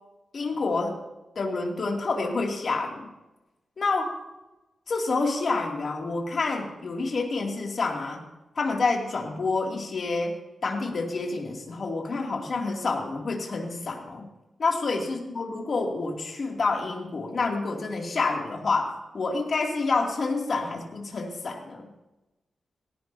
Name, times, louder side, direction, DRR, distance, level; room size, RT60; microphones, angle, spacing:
voice 1, 0.3-1.0 1.4-3.1 3.8-4.2 4.9-8.3 8.6-14.3 14.6-21.9, left 3 dB, 50° left, 0 dB, 2.6 m, -28 dB
20.0 x 17.0 x 2.8 m, 1.0 s
wide cardioid pair, 160°, 0 cm